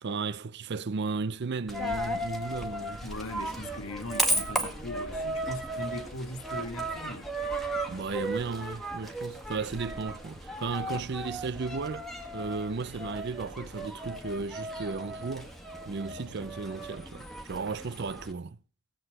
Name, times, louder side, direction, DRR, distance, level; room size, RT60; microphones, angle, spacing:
voice 1, 0.0-3.0 7.9-15.5 15.9-18.6, right 4 dB, 50° right, 0.5 m, -35 dB
Coin (dropping), 1.7-18.3, right 1 dB, ahead, 1.6 m, -35 dB
voice 2, 3.0-7.3, left 1 dB, 70° left, 1.5 m, -39 dB
17.0 x 7.9 x 4.7 m
head